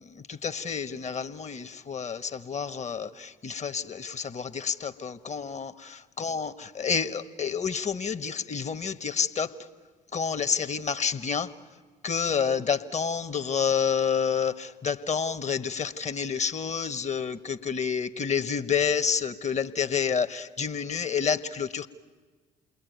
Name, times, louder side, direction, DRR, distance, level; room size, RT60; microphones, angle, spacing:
voice 1, 0.3-3.1 3.4-5.7 6.2-9.5 10.1-11.5 12.0-21.9, left 6 dB, 35° left, 11 dB, 1.3 m, -29 dB
28.5 x 21.5 x 9.4 m, 1.4 s
hypercardioid pair, 50°, 20 cm